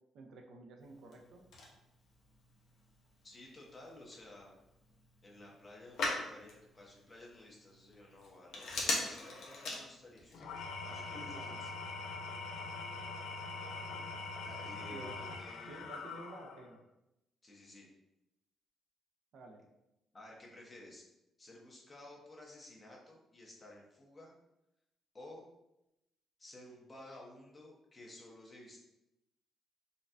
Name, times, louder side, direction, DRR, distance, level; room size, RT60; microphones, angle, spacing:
voice 1, 0.1-1.4 11.3-11.6 14.9-15.2 15.7-16.8 19.3-19.7, right 2 dB, 70° right, 2 dB, 0.5 m, -51 dB
Telephone, 0.8-10.4, left 2 dB, 70° left, 0.8 m, -43 dB
voice 2, 3.2-4.5 5.2-11.7 13.5-16.0 17.4-17.9 20.1-21.0 21.4-24.3 25.1-25.5 26.4-28.8, left 1 dB, 25° left, -2 dB, 0.9 m, -54 dB
Engine / Tools, 10.3-16.8, left 3 dB, 85° left, 0.3 m, -43 dB
4.0 x 2.2 x 2.6 m, 0.88 s
cardioid pair, 90°, 0 cm